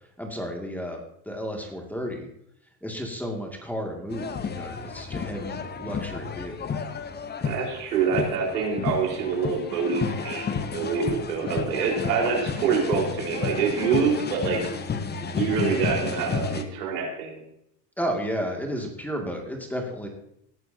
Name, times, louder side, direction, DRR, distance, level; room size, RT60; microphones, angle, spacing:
voice 1, 0.2-1.0 1.3-2.3 2.8-6.8 18.0-20.1, equal, 5° left, 1 dB, 2.4 m, -32 dB
sound 1, 4.1-16.6, left 5 dB, 20° left, 1.0 m, -31 dB
voice 2, 7.4-10.5 10.7-14.7 15.3-17.4, right 5 dB, 90° right, -1 dB, 4.7 m, -26 dB
18.5 x 11.5 x 2.9 m, 0.75 s
supercardioid pair, 105°, 47 cm